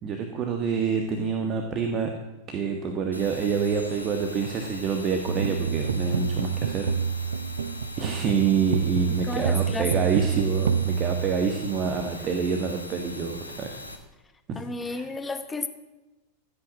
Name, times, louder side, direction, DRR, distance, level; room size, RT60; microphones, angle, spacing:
voice 1, 0.0-2.1 2.5-6.9 8.0-13.8 14.5-15.1, right 6 dB, 30° right, 5 dB, 1.5 m, -27 dB
sound 1, 3.1-14.0, left 1 dB, 90° left, 1.8 m, -41 dB
sound 2, 5.3-11.9, right 6 dB, 65° right, 0.6 m, -28 dB
voice 2, 9.1-9.9 14.5-15.7, left 3 dB, 10° left, 9 dB, 1.1 m, -32 dB
15.0 x 8.8 x 7.5 m, 1.1 s
figure-of-eight pair, 90°, 0 cm